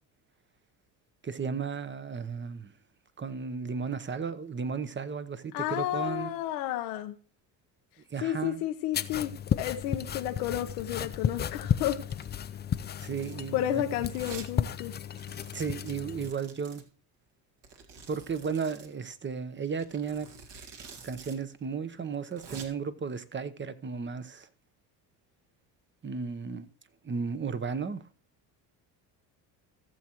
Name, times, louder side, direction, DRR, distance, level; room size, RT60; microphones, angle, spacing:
voice 1, 1.2-2.7 3.2-6.4 8.1-8.6 13.0-13.8 15.5-16.8 18.1-20.3 21.0-24.5 26.0-26.7 27.0-28.0, right 5 dB, 25° right, 1.0 m, -34 dB
voice 2, 5.5-7.1 8.2-12.0 13.5-14.9, left 12 dB, 75° left, 1.0 m, -31 dB
sound 1, 8.9-16.3, left 8 dB, 20° left, 0.4 m, -33 dB
Domestic sounds home sounds, 12.0-12.3 12.9-13.5 14.1-14.5 14.8-14.9 15.1-16.8 17.6-18.9 19.8-21.4 21.6-21.7 22.1-22.6, right 5 dB, 55° right, 2.0 m, -48 dB
16.5 x 7.3 x 3.0 m
hypercardioid pair, 75°, 49 cm